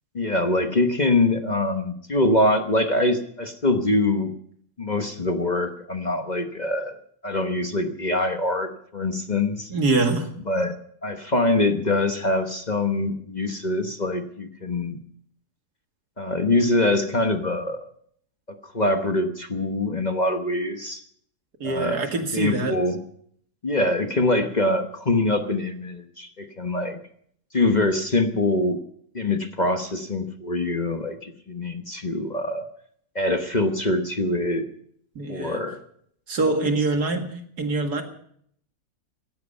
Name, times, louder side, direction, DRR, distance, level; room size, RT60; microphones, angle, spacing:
voice 1, 0.1-4.3 4.8-7.0 7.2-9.7 10.5-10.8 11.0-15.0 16.2-17.8 18.7-21.0 21.6-22.0 22.3-23.0 23.6-27.0 27.5-28.8 29.1-32.7 33.1-34.7 35.3-35.8, left 2 dB, 30° left, 6 dB, 1.1 m, -24 dB
voice 2, 9.7-10.3 21.6-22.8 35.2-35.6 36.3-38.0, right 3 dB, 80° right, 4 dB, 2.6 m, -24 dB
17.0 x 15.5 x 5.5 m, 0.65 s
omnidirectional pair, 1.7 m